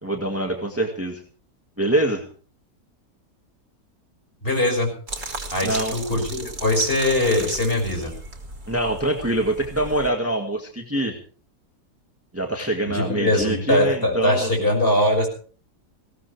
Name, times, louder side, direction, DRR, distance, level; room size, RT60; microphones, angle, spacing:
voice 1, 0.0-1.2 1.8-2.2 5.6-6.0 8.7-11.2 12.3-14.5, right 1 dB, 10° right, 2 dB, 1.8 m, -24 dB
voice 2, 4.4-4.9 5.5-8.1 12.9-15.3, left 1 dB, 35° left, 2 dB, 6.3 m, -21 dB
sound 1, 5.1-10.1, right 3 dB, 60° right, 3.0 m, -35 dB
20.5 x 17.5 x 3.4 m, 0.42 s
omnidirectional pair, 1.7 m